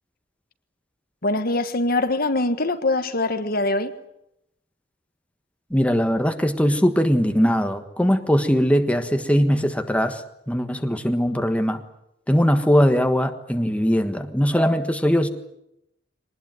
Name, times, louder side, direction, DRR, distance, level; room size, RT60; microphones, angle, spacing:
voice 1, 1.2-3.9, left 2 dB, 55° left, 1.5 m, -23 dB
voice 2, 5.7-11.8 12.3-15.3, equal, 5° left, 1.4 m, -20 dB
23.0 x 19.5 x 9.4 m
head